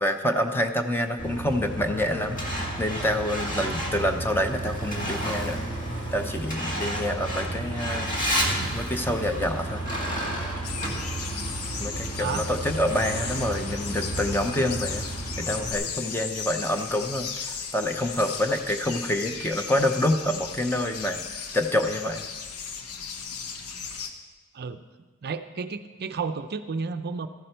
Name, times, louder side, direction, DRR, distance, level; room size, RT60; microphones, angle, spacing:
voice 1, 0.0-2.4 2.8-5.6 6.1-8.1 8.7-9.8 11.8-15.0 15.4-21.2 21.5-22.2, left 1 dB, 10° left, 6 dB, 0.7 m, -27 dB
Truck, 1.2-15.7, right 1 dB, 35° left, 2.1 m, -31 dB
sound 1, 10.6-24.1, left 6 dB, 80° left, 1.0 m, -36 dB
voice 2, 25.2-27.3, right 5 dB, 45° right, 10 dB, 0.5 m, -32 dB
13.5 x 11.0 x 4.5 m, 1.2 s
head